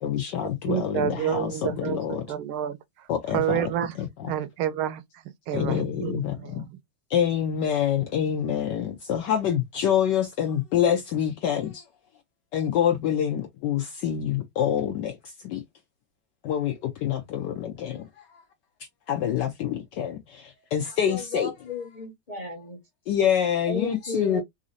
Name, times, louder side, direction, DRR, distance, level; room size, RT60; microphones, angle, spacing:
voice 1, 0.0-2.3 3.1-3.7 4.0-4.3 5.5-6.6 7.1-11.8 12.5-15.6 16.4-18.0 19.1-21.5 23.1-24.4, left 9 dB, 70° left, 1.0 m, -26 dB
voice 2, 0.7-2.8 3.3-3.9 4.3-5.0 5.5-6.2, right 11 dB, 80° right, 1.4 m, -28 dB
voice 3, 20.9-22.8 23.7-24.4, left 2 dB, 40° left, 0.5 m, -34 dB
4.1 x 2.6 x 2.5 m
omnidirectional pair, 2.4 m